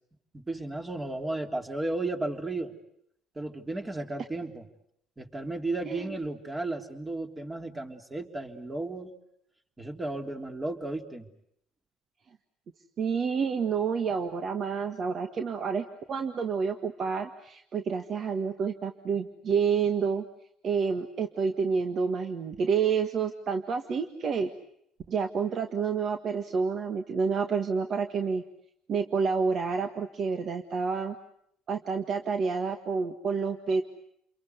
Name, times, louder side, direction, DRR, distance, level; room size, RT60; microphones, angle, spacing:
voice 1, 0.3-2.8 3.4-4.6 5.2-9.1 9.8-11.3, right 2 dB, 20° right, 3 dB, 3.4 m, -34 dB
voice 2, 13.0-20.2 20.6-24.5 25.1-28.4 28.9-31.2 31.7-33.8, right 5 dB, 50° right, 6 dB, 1.7 m, -29 dB
29.5 x 23.0 x 8.2 m, 0.73 s
supercardioid pair, 85°, 0 cm